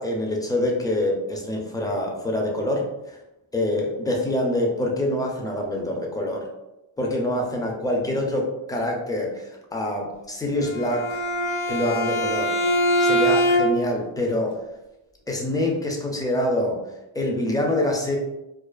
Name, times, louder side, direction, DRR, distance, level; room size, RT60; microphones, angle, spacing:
voice 1, 0.0-3.2 3.5-6.5 7.0-11.2 11.7-12.6 13.0-14.6 15.3-16.8 17.1-18.2, left 1 dB, 10° left, -1 dB, 0.4 m, -25 dB
Bowed string instrument, 10.6-14.0, equal, 60° left, 0.8 m, -22 dB
2.4 x 2.3 x 2.2 m, 0.94 s
wide cardioid pair, 55°, 48 cm